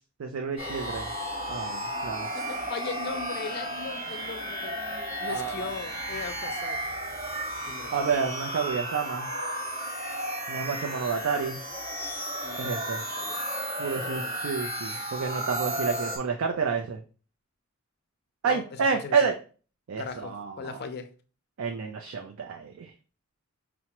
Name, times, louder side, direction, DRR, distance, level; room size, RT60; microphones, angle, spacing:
voice 1, 0.2-1.1 1.5-2.3 5.3-5.6 7.9-9.3 10.5-11.6 12.6-13.0 13.8-17.0 18.4-19.4 19.9-20.8 21.6-22.9, right 5 dB, 80° right, 0.4 m, -29 dB
sound 1, 0.6-16.2, right 1 dB, 30° right, 1.0 m, -33 dB
voice 2, 2.1-4.9 5.2-6.8 7.6-8.1 12.4-13.4 13.9-14.4 18.5-18.6 19.0-19.2 20.0-21.1, left 5 dB, 50° left, 0.4 m, -39 dB
5.6 x 2.0 x 2.9 m
head